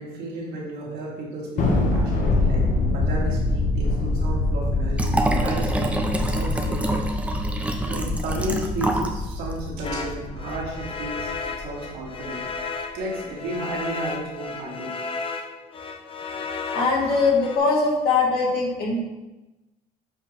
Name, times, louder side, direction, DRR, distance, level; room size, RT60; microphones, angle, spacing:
voice 1, 0.0-5.9 6.3-7.0 7.8-12.4 12.9-14.9, right 2 dB, 80° right, -4 dB, 2.6 m, -33 dB
Thunder, 1.6-12.2, left 2 dB, 50° left, 1.4 m, -25 dB
Liquid, 4.9-9.2 9.5-9.6, right 1 dB, 5° right, 0.7 m, -26 dB
sound 1, 9.8-17.6, left 4 dB, 30° left, 0.7 m, -33 dB
voice 2, 16.7-19.0, left 4 dB, 70° left, -3 dB, 2.4 m, -21 dB
8.2 x 4.6 x 4.0 m, 1.0 s
cardioid pair, 110°, 17 cm